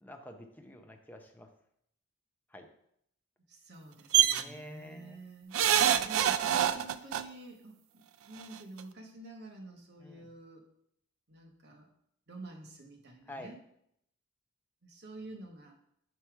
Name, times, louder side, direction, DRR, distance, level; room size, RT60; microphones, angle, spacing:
voice 1, 0.0-1.5 2.5-2.6 4.3-5.2 10.0-10.3 13.3-13.5, left 1 dB, 10° left, 3 dB, 0.6 m, -48 dB
voice 2, 3.5-5.6 6.0-10.6 11.3-11.9 12.3-13.6 14.8-15.7, right 2 dB, 55° right, 2 dB, 1.2 m, -49 dB
sound 1, 4.1-4.4 5.5-7.2 8.4-8.5 8.8-8.9, right 10 dB, 70° right, 0.4 m, -25 dB
5.7 x 4.8 x 4.5 m, 0.74 s
head